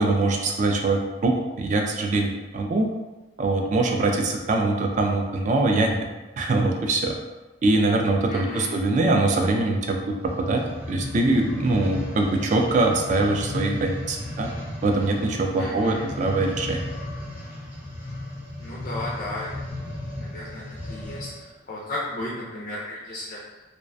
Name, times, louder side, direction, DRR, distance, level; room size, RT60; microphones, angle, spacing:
voice 1, 0.0-2.9 3.4-6.0 6.4-7.1 7.6-14.5 14.8-16.8, right 2 dB, 40° right, 2 dB, 0.3 m, -23 dB
voice 2, 8.3-8.7 15.6-16.1 18.6-19.6 20.2-23.6, left 1 dB, 50° left, -5 dB, 0.4 m, -34 dB
sound 1, 10.1-21.5 22.1-22.2, left 1 dB, 10° right, 0.6 m, -35 dB
2.3 x 2.1 x 2.5 m, 1.1 s
head